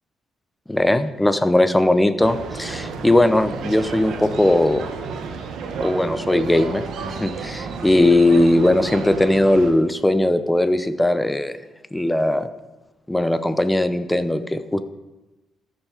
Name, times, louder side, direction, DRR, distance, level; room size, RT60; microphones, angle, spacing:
voice 1, 0.7-4.8 5.8-11.6 11.9-12.5 13.1-14.8, left 1 dB, 10° left, 11 dB, 0.7 m, -19 dB
sound 1, 2.2-9.7, right 5 dB, 75° right, 1.2 m, -32 dB
13.5 x 6.5 x 5.0 m, 1.1 s
cardioid pair, 90°, 0 cm